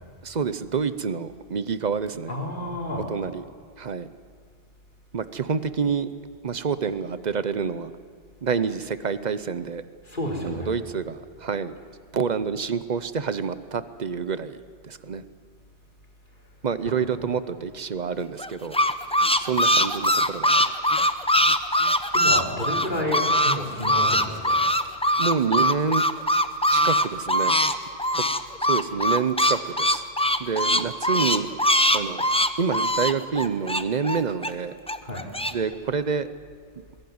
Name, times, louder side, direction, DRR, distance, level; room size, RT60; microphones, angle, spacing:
voice 1, 0.2-2.3 3.1-3.4 3.8-4.1 5.1-6.1 6.4-7.9 8.4-9.8 10.4-11.7 12.1-14.6 14.8-15.2 16.6-18.8 19.4-20.7 25.2-26.0 26.7-27.6 28.1-28.2 28.6-30.0 30.4-31.5 31.9-32.3 32.6-34.7 35.5-36.3, right 6 dB, 45° right, 13 dB, 0.8 m, -27 dB
voice 2, 2.3-3.1 10.1-10.7 16.9-17.0 22.1-24.6 35.0-35.2, left 1 dB, 45° left, -1 dB, 4.0 m, -30 dB
sound 1, 18.4-23.6 23.8-27.7 28.0-34.5 34.9-35.5, equal, 5° left, 0.6 m, -21 dB
22.0 x 16.5 x 9.4 m, 2.1 s
omnidirectional pair, 1.1 m